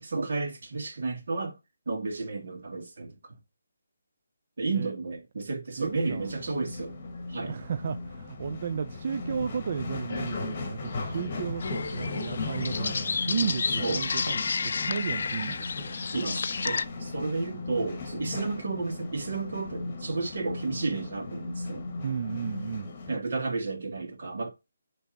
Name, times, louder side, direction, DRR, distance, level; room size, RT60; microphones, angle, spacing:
voice 1, 0.0-1.6 1.9-3.3 4.6-6.9 7.3-7.6 13.8-14.0 16.1-21.9 23.1-24.5, right 3 dB, 55° right, 2.0 m, -32 dB
sound 1, 5.8-23.2, left 3 dB, 30° left, 1.3 m, -37 dB
voice 2, 5.8-6.3 7.5-15.9 22.0-22.9, right 7 dB, 40° right, 0.3 m, -34 dB
sound 2, 11.6-16.9, left 5 dB, 55° left, 0.4 m, -31 dB
8.1 x 3.4 x 4.2 m
hypercardioid pair, 170°, 0 cm